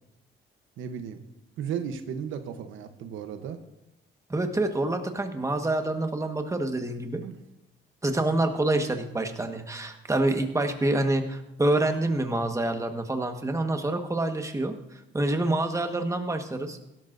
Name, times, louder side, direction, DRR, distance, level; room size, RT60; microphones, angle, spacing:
voice 1, 0.8-1.2 1.6-3.6 7.2-7.3, right 8 dB, 85° right, 8 dB, 1.0 m, -35 dB
voice 2, 4.3-7.2 8.0-14.7 15.1-16.9, right 2 dB, 15° right, 5 dB, 1.4 m, -27 dB
17.0 x 12.5 x 2.6 m, 0.89 s
cardioid pair, 90°, 20 cm